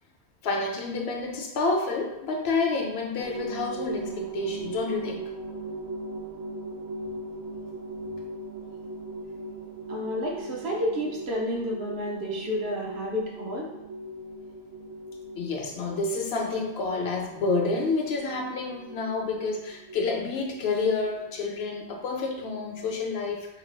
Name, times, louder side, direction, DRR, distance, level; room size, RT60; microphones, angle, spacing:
voice 1, 0.4-5.2 15.4-23.5, left 3 dB, 75° left, 1 dB, 0.8 m, -29 dB
sound 1, 3.2-23.0, right 2 dB, 50° right, 0.6 m, -39 dB
voice 2, 9.9-13.7, equal, 80° right, -2 dB, 0.9 m, -30 dB
2.8 x 2.3 x 3.2 m, 0.93 s
omnidirectional pair, 1.1 m